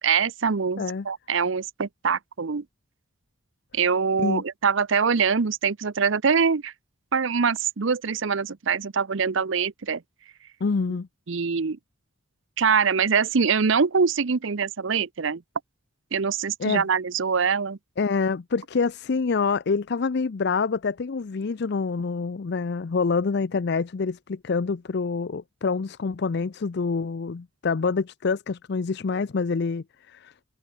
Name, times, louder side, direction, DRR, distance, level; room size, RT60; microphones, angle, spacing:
voice 1, 0.0-2.6 3.7-6.7 7.1-10.0 11.3-11.8 12.6-15.4 16.1-17.8, right 6 dB, 60° right, 0.7 m, -24 dB
voice 2, 10.6-11.1 16.6-16.8 18.0-30.3, left 4 dB, 55° left, 0.5 m, -26 dB
head